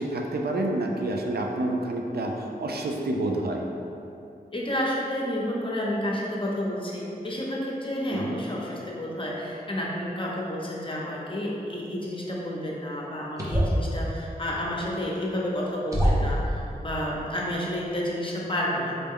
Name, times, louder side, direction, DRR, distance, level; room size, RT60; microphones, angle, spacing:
voice 1, 0.0-3.6 8.1-8.4, right 1 dB, 75° right, 1 dB, 0.4 m, -28 dB
voice 2, 4.5-19.0, left 1 dB, 30° left, -3 dB, 0.7 m, -30 dB
sound 1, 13.4-13.9 15.2-15.3 15.9-16.4, equal, 20° right, 0.7 m, -23 dB
3.9 x 2.2 x 3.6 m, 2.7 s
wide cardioid pair, 60°, 16 cm